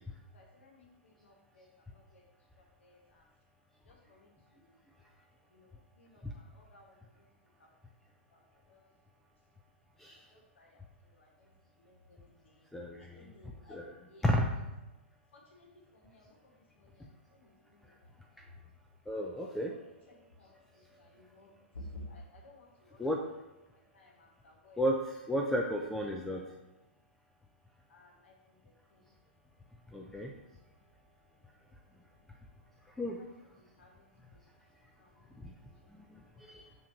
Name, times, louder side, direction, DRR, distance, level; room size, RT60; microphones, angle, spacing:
voice 1, 0.3-1.7 1.9-2.2 2.8-3.2 3.9-4.7 5.5-7.3 7.6-7.7 8.3-8.8 10.3-11.5 11.8-13.8 14.1-14.4 15.3-15.7 15.9-18.0 19.2-19.8 20.4-23.0 23.9-24.8 26.1-26.4 27.9-28.6 28.9-29.0 33.2-33.3 33.6-34.4 35.0-35.2 35.8-35.9 36.3-36.4, left 1 dB, 85° left, -1 dB, 1.9 m, -56 dB
voice 2, 12.7-13.3 13.7-14.0 14.2-14.5 19.1-19.8 23.0-23.2 24.8-26.4 29.9-30.3 33.0-33.2 35.4-35.5 36.4-36.7, equal, 5° left, 0 dB, 0.4 m, -33 dB
6.3 x 3.0 x 5.8 m, 1.0 s
hypercardioid pair, 150°, 6 cm